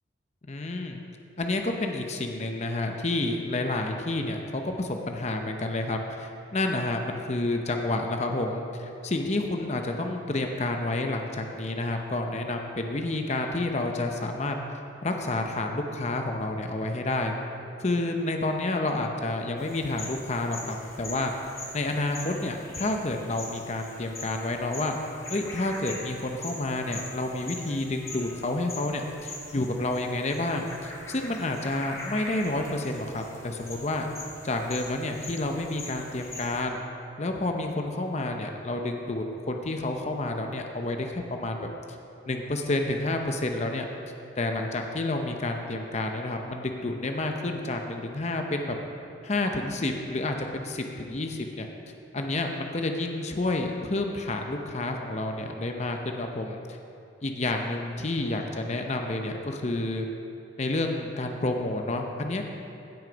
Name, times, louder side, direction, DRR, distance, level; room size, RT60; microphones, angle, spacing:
voice 1, 0.5-1.0 1.4-14.6 15.0-17.3 17.8-21.3 21.7-25.0 25.3-34.1 34.4-36.8 37.2-41.7 42.3-43.9 44.4-48.8 49.2-51.7 52.1-56.6 57.2-60.1 60.6-62.4, left 2 dB, 35° left, 4 dB, 0.7 m, -29 dB
sound 1, 19.6-36.6, left 2 dB, 15° left, 1.3 m, -42 dB
16.0 x 6.3 x 5.1 m, 2.7 s
head